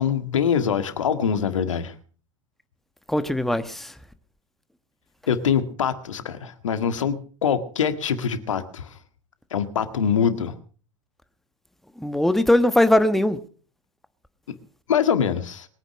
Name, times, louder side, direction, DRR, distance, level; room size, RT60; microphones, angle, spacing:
voice 1, 0.0-1.9 5.3-9.0 9.5-10.6 14.9-15.7, left 7 dB, 75° left, 1.8 m, -24 dB
voice 2, 3.1-3.9 12.0-13.4, left 1 dB, ahead, 1.3 m, -20 dB
22.5 x 9.8 x 6.3 m
figure-of-eight pair, 90°, 16 cm